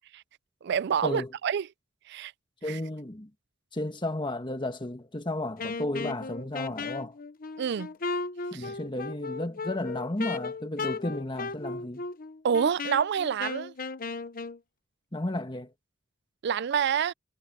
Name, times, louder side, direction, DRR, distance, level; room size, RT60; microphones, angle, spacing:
voice 1, 0.6-1.7 2.1-2.3 2.7-2.8 7.6-7.9 8.5-8.7 12.4-13.7 16.4-17.1, right 7 dB, 60° right, 0.4 m, -27 dB
voice 2, 2.6-3.3 3.7-7.2 8.5-12.0 15.1-15.7, left 1 dB, 25° left, 1.5 m, -33 dB
Wind instrument woodwind instrument, 5.6-14.6, left 4 dB, 45° left, 1.0 m, -36 dB
head